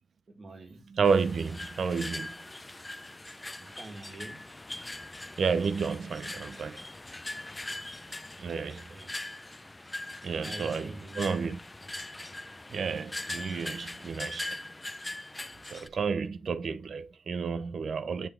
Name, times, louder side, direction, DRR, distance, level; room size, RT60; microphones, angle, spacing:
voice 1, 0.3-0.8 3.5-4.5 8.7-9.1 10.4-11.5, right 2 dB, 55° right, 1.9 m, -46 dB
voice 2, 0.9-2.3 5.4-6.8 8.4-8.9 10.2-11.6 12.7-14.6 15.7-18.3, right 5 dB, 75° right, 0.6 m, -31 dB
sound 1, 1.0-15.9, left 2 dB, 25° left, 0.5 m, -41 dB
7.8 x 3.4 x 4.6 m
cardioid pair, 55°, 0 cm